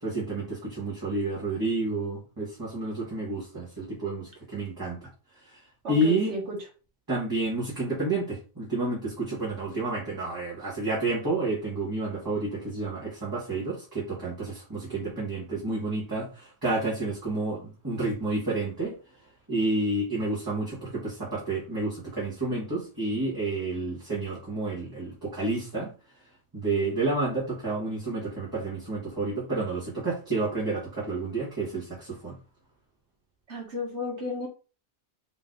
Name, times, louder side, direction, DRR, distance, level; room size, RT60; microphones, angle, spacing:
voice 1, 0.0-5.0 5.5-5.6 5.9-6.4 7.1-18.9 19.5-25.9 26.5-32.4, right 2 dB, 20° right, -8 dB, 1.7 m, -30 dB
voice 2, 5.8-6.6 33.5-34.5, equal, 80° right, 0 dB, 1.6 m, -33 dB
4.1 x 3.4 x 3.9 m, 0.35 s
omnidirectional pair, 1.2 m